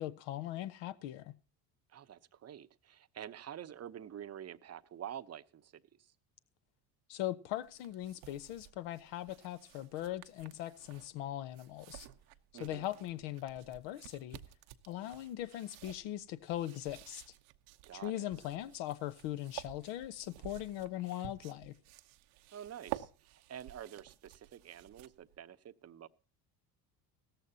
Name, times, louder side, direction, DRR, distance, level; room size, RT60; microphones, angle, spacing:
voice 1, 0.0-1.3 7.1-12.1 12.6-14.4 14.9-17.2 17.9-21.7, left 13 dB, 70° left, 1.1 m, -40 dB
voice 2, 1.9-6.1 12.5-12.9 17.9-18.3 22.5-26.1, right 10 dB, 30° right, 0.8 m, -48 dB
sound 1, 7.6-25.4, right 16 dB, 75° right, 1.0 m, -52 dB
16.5 x 14.0 x 2.8 m
hypercardioid pair, 75°, 48 cm